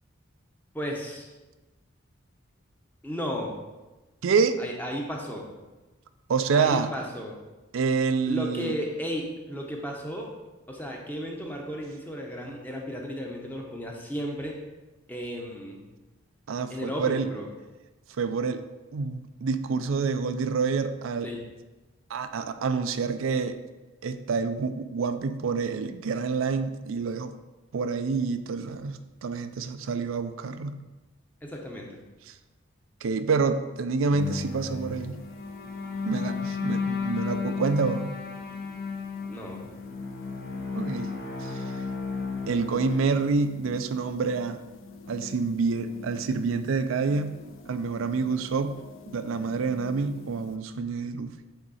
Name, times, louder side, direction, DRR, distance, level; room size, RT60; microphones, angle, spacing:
voice 1, 0.7-1.3 3.0-3.5 4.6-5.5 6.5-7.4 8.3-10.3 10.7-14.6 15.1-15.8 16.7-17.5 21.2-21.4 31.4-32.0 39.3-39.7, equal, 10° left, 0 dB, 0.8 m, -34 dB
voice 2, 4.2-4.6 6.3-6.9 7.7-8.8 16.5-17.3 18.2-18.6 18.9-21.3 22.1-23.6 24.0-27.3 27.7-30.8 32.3-32.4 33.0-35.2 36.0-38.2 40.7-41.1 41.4-41.6 42.5-44.6 45.1-47.4 47.7-48.8 49.1-51.3, right 4 dB, 80° right, 10 dB, 0.4 m, -27 dB
sound 1, 34.1-43.3, left 5 dB, 50° left, 1.0 m, -34 dB
sound 2, 34.2-50.6, left 2 dB, 80° left, 0.5 m, -46 dB
7.9 x 3.6 x 4.2 m, 1.1 s
head